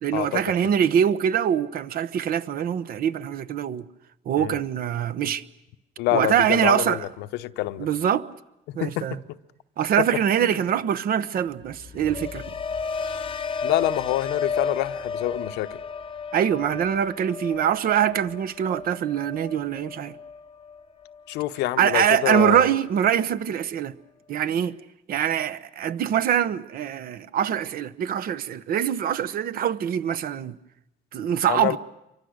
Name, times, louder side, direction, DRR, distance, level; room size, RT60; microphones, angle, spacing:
voice 1, 0.0-3.9 4.3-5.4 6.1-7.1 7.8-8.3 8.7-9.2 9.8-12.5 16.3-20.1 21.8-23.9 24.3-24.7 25.1-30.5 31.1-31.8, right 9 dB, 60° right, 1.0 m, -24 dB
voice 2, 6.0-7.0 7.4-7.9 8.8-9.2 10.4-10.5 13.6-15.8 21.3-22.7 31.5-31.8, left 15 dB, 90° left, 0.9 m, -26 dB
sound 1, 11.6-21.7 22.1-22.5, left 5 dB, 30° left, 0.9 m, -33 dB
29.0 x 24.5 x 6.5 m
cardioid pair, 110°, 17 cm